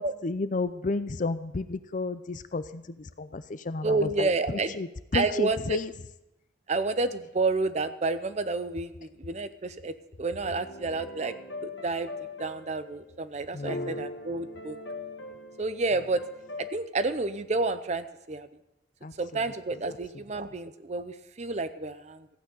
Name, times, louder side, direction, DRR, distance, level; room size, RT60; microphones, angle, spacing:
voice 1, 0.0-4.9 5.1-5.9 13.5-14.0 19.0-19.1, left 3 dB, 45° left, 13 dB, 0.5 m, -32 dB
voice 2, 3.8-4.8 5.1-5.8 6.7-11.3 11.6-12.1 12.4-14.8 15.6-16.3 16.6-18.5 19.2-22.3, right 3 dB, 35° right, 12 dB, 0.6 m, -30 dB
sound 1, 10.4-13.1 13.5-16.8, left 2 dB, 85° left, 1.6 m, -40 dB
14.5 x 9.0 x 5.4 m, 0.88 s
head